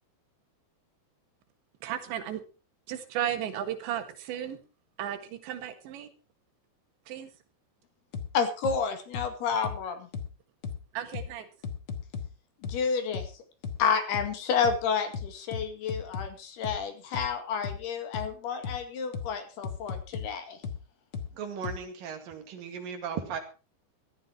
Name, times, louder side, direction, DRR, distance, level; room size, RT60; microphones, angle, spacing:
voice 1, 1.8-2.4 2.9-4.6 5.0-6.1 7.1-7.3 10.9-11.5, right 10 dB, 85° right, 3.8 m, -34 dB
sound 1, 8.1-8.3 8.6-8.8 9.1-9.3 9.6-9.8 10.1-10.3 10.6-10.8 11.1-11.3 11.6-12.3 12.6-12.8 13.1-13.3 13.6-13.8 14.1-14.3 14.6-14.8 15.1-16.3 16.6-16.8 17.1-17.3 17.6-17.8 18.1-18.3 18.6-18.8 19.1-19.3 19.6-20.3 20.6-20.8 21.1-21.3 21.6-21.8, left 6 dB, 85° left, 1.2 m, -35 dB
voice 2, 8.3-10.1 12.6-13.3 13.8-20.6, left 6 dB, 70° left, 3.9 m, -30 dB
voice 3, 21.3-23.4, right 6 dB, 60° right, 3.4 m, -36 dB
15.5 x 12.5 x 4.5 m
omnidirectional pair, 5.0 m